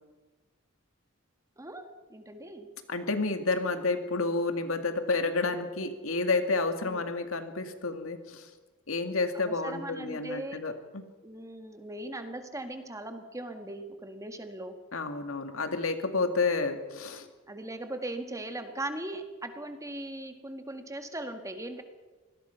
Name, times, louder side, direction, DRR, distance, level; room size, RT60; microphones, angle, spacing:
voice 1, 1.6-2.7 6.8-7.0 9.3-10.6 11.2-14.8 17.5-21.8, right 1 dB, 15° right, 6 dB, 1.8 m, -39 dB
voice 2, 2.9-8.5 8.9-11.0 14.9-17.3, left 3 dB, 80° left, 7 dB, 2.1 m, -30 dB
25.5 x 19.5 x 5.8 m, 1.3 s
head